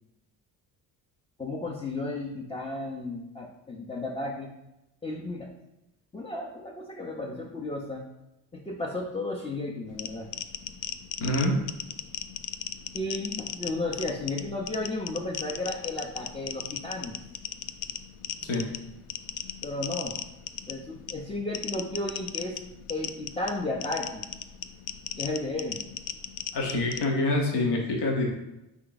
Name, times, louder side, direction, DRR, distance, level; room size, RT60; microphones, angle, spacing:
voice 1, 1.4-4.5 5.0-5.5 6.1-8.1 8.5-10.3 12.9-17.2 18.3-18.4 19.6-20.2 20.7-22.6 22.8-24.2 25.2-25.9, left 2 dB, 10° left, -2 dB, 0.7 m, -33 dB
sound 1, 9.9-27.0, left 9 dB, 50° left, 0.4 m, -38 dB
voice 2, 11.2-11.6 18.4-18.7 26.5-28.3, left 2 dB, 65° left, -1 dB, 1.2 m, -26 dB
3.7 x 3.6 x 3.9 m, 0.92 s
supercardioid pair, 60°, 44 cm